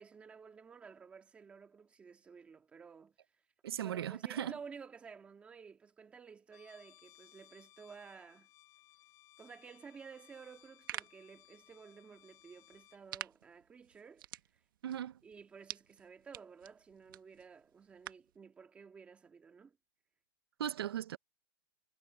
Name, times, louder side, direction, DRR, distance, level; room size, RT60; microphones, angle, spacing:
voice 1, 0.0-3.1 3.8-8.5 9.4-14.3 15.2-19.8, right 6 dB, 10° right, 1.8 m, -53 dB
voice 2, 3.6-4.6 14.8-15.2 20.6-21.2, right 11 dB, 85° right, 0.9 m, -38 dB
Trumpet, 6.5-13.0, left 18 dB, 25° left, 5.4 m, -63 dB
sound 1, 10.5-18.4, right 13 dB, 60° right, 1.5 m, -50 dB
supercardioid pair, 170°, 13 cm